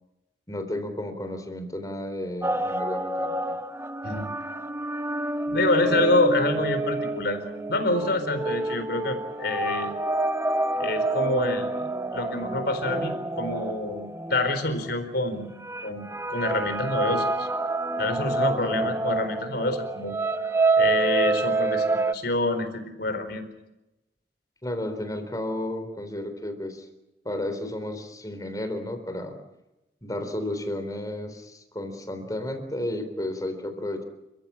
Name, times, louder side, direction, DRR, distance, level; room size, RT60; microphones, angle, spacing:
voice 1, 0.5-3.6 18.5-19.0 24.6-26.9 27.2-29.3 30.0-34.0, left 1 dB, 20° left, 7 dB, 3.9 m, -33 dB
sound 1, 2.4-14.9 15.6-22.1, right 2 dB, 15° right, 0.8 m, -28 dB
voice 2, 5.5-7.4 7.7-9.9 10.8-15.5 15.8-17.5 18.0-20.5 20.8-23.5, left 2 dB, 60° left, 9 dB, 4.4 m, -27 dB
30.0 x 15.0 x 8.7 m, 0.96 s
head